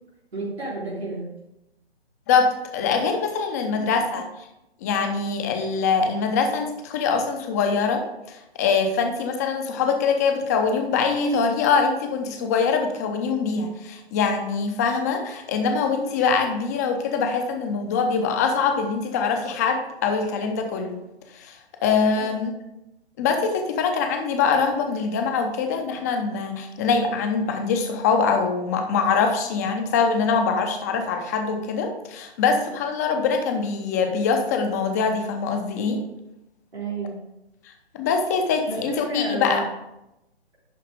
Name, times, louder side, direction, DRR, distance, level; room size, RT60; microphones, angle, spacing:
voice 1, 0.3-1.3 3.7-3.8 22.2-22.3 36.7-37.1 38.7-39.7, right 2 dB, 75° right, -5 dB, 3.6 m, -31 dB
voice 2, 2.3-4.3 4.8-21.0 21.3-21.6 21.8-22.5 23.2-36.0 37.9-39.6, left 5 dB, 15° left, 5 dB, 0.7 m, -23 dB
11.0 x 4.3 x 4.9 m, 0.91 s
figure-of-eight pair, 135°, 32 cm